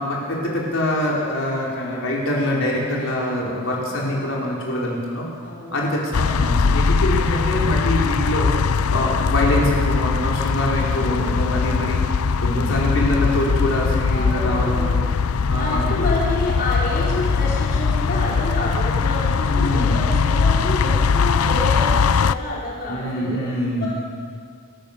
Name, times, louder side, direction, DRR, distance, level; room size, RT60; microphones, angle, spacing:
voice 1, 0.0-5.3 5.7-8.5 8.9-12.0 12.4-14.9 15.4-15.9 19.4-20.0 22.9-23.9, left 1 dB, 65° left, -4 dB, 4.8 m, -24 dB
voice 2, 3.8-4.3 5.4-5.9 7.5-7.8 10.9-11.4 14.1-15.0 15.5-23.4 23.8-23.9, left 1 dB, 45° left, -5 dB, 4.4 m, -29 dB
sound 1, 6.1-22.3, left 5 dB, 85° left, 0.5 m, -20 dB
28.0 x 15.0 x 6.9 m, 2.1 s
head